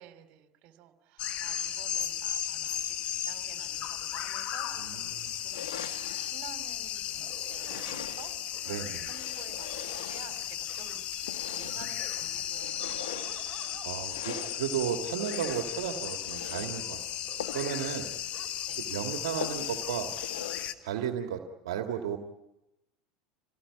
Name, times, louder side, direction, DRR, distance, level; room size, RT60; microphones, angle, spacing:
voice 1, 0.0-8.3 8.6-13.8 17.8-17.9 18.7-18.9, right 12 dB, 55° right, 8 dB, 2.9 m, -52 dB
sound 1, 1.2-20.7, left 10 dB, 50° left, 1.6 m, -35 dB
voice 2, 4.8-5.3 8.7-9.1 11.6-11.8 13.8-17.3 17.5-18.1 18.8-20.1 20.8-22.2, right 9 dB, 75° right, 4 dB, 2.0 m, -34 dB
sound 2, 5.5-6.3 7.5-8.4 9.0-10.7 11.2-11.9 12.5-13.4 14.0-14.6 15.2-15.8 16.2-16.7 17.4-17.8 18.1-18.2 18.6-18.7 19.4-19.9 20.2-20.7, left 9 dB, 80° left, 2.0 m, -42 dB
sound 3, 7.0-20.2 20.5-20.6 20.8-21.1, right 7 dB, 30° right, 4.6 m, -54 dB
27.0 x 18.5 x 9.7 m, 0.94 s
hypercardioid pair, 90°, 3 cm